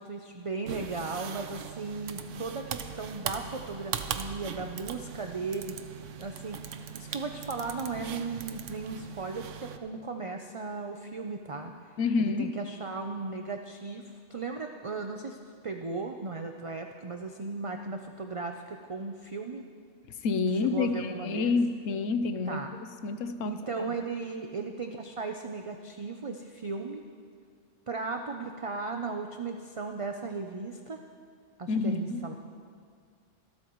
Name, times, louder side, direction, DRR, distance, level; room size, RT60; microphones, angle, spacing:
voice 1, 0.0-5.8 6.2-11.9 12.2-15.4 15.6-19.6 20.5-21.6 22.5-22.7 23.4-27.0 27.9-31.0 31.6-32.3, right 4 dB, 35° right, 4 dB, 0.5 m, -36 dB
sound 1, 0.7-9.8, right 8 dB, 70° right, 1.1 m, -40 dB
voice 2, 12.0-12.5 20.2-22.6 23.0-23.9 31.7-32.2, left 4 dB, 80° left, 9 dB, 1.1 m, -28 dB
25.5 x 13.0 x 3.1 m, 2.1 s
omnidirectional pair, 1.3 m